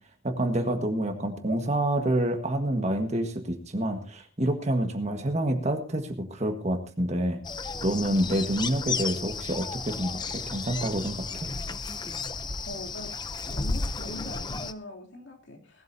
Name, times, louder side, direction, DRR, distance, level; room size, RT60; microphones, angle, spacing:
voice 1, 0.2-7.4 7.8-11.5, right 1 dB, 30° right, 5 dB, 1.6 m, -28 dB
sound 1, 7.4-14.7, left 4 dB, 20° left, 0.6 m, -33 dB
voice 2, 12.6-13.2 13.5-15.8, left 1 dB, 55° left, 1 dB, 3.3 m, -42 dB
19.0 x 13.0 x 2.8 m, 0.37 s
head